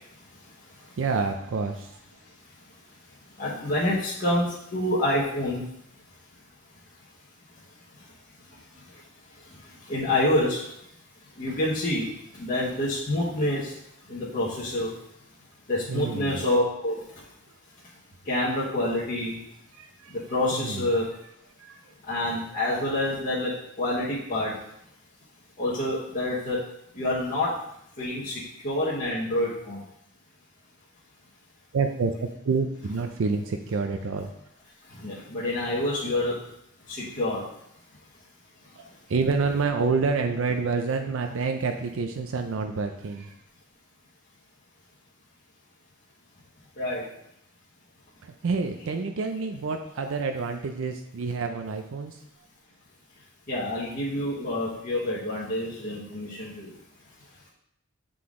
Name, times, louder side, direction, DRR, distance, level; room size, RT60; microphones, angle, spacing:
voice 1, 0.1-0.9 3.4-5.6 7.9-8.1 8.5-9.0 9.3-10.8 11.4-13.8 14.0-15.0 15.7-17.3 18.2-19.4 20.1-21.1 22.1-24.6 25.6-27.6 28.0-29.8 34.9-36.5 36.9-37.5 46.8-47.1 53.5-56.8, left 1 dB, 40° left, -7 dB, 1.1 m, -28 dB
voice 2, 1.0-2.0 15.9-16.4 19.7-20.2 20.5-20.9 21.6-21.9 31.7-34.3 38.8-43.4 48.2-52.2, right 4 dB, 60° right, 5 dB, 0.4 m, -28 dB
7.7 x 3.9 x 3.6 m, 0.76 s
head